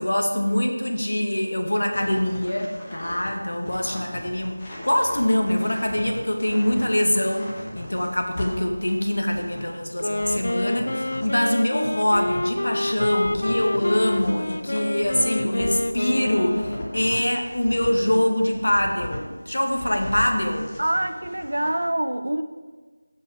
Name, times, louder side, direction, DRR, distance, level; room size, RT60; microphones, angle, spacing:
voice 1, 0.0-20.7, left 1 dB, 90° left, 3 dB, 1.9 m, -24 dB
sound 1, 1.9-11.4 11.8-19.2 19.6-21.9, left 1 dB, 10° left, 1.2 m, -37 dB
Wind instrument woodwind instrument, 9.9-17.1, left 1 dB, 60° left, 0.5 m, -28 dB
voice 2, 20.8-22.4, right 1 dB, 85° right, 10 dB, 0.8 m, -25 dB
16.5 x 5.6 x 4.9 m, 1.4 s
figure-of-eight pair, 180°, 0 cm